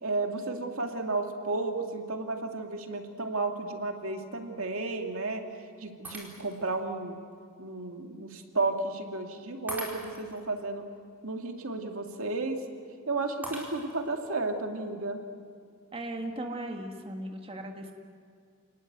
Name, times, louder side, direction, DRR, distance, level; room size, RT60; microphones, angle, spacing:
voice 1, 0.0-5.4 5.8-7.1 7.6-10.8 11.2-12.6 13.1-15.2, right 3 dB, 85° right, 4 dB, 2.3 m, -33 dB
Shatter, 6.0-6.7 7.3-7.4 9.7-10.4 13.4-14.2, right 1 dB, 10° right, 4.5 m, -41 dB
voice 2, 15.9-17.9, right 1 dB, 25° right, 3 dB, 1.7 m, -37 dB
29.0 x 19.5 x 8.1 m, 2.2 s
head